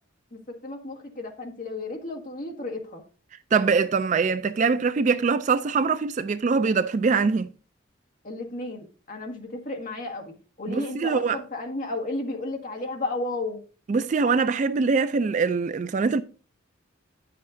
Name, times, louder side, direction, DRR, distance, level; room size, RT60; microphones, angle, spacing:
voice 1, 0.3-3.0 8.2-13.6, left 2 dB, 40° left, 1.7 m, -33 dB
voice 2, 3.5-7.5 10.7-11.4 13.9-16.2, right 5 dB, 35° right, 0.3 m, -23 dB
9.9 x 7.5 x 2.6 m
head